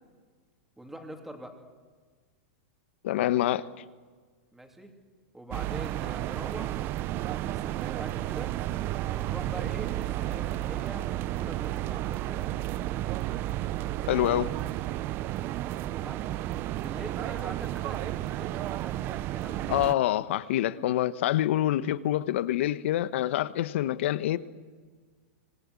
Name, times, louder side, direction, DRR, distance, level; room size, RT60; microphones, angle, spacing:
voice 1, 0.8-1.5 4.5-4.9 5.3-6.8 7.2-8.5 9.1-12.6 15.9-16.3 16.8-19.8, right 1 dB, 5° right, 3.0 m, -44 dB
voice 2, 3.0-3.7 14.1-14.5 19.7-24.4, left 13 dB, 65° left, 1.2 m, -26 dB
sound 1, 5.5-19.9, right 14 dB, 30° right, 0.7 m, -32 dB
25.5 x 17.5 x 9.8 m
supercardioid pair, 150°, 7 cm